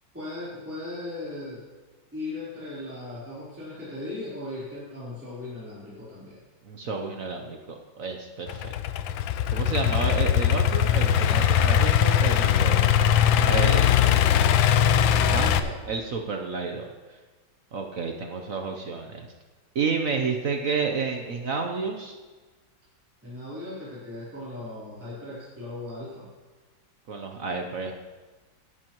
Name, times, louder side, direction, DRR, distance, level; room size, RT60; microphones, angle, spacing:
voice 1, 0.1-1.6 2.1-6.4 13.0-15.8 23.2-26.3, left 2 dB, 5° right, -10 dB, 3.8 m, -38 dB
voice 2, 6.6-8.7 9.5-13.0 13.5-14.1 15.2-15.5 15.9-17.2 17.7-19.3 19.7-22.2 27.1-27.9, right 4 dB, 55° right, 4 dB, 1.0 m, -30 dB
Idling / Accelerating revving vroom, 8.5-15.6, left 10 dB, 80° left, 1.3 m, -21 dB
16.5 x 11.0 x 3.1 m, 1.3 s
omnidirectional pair, 2.2 m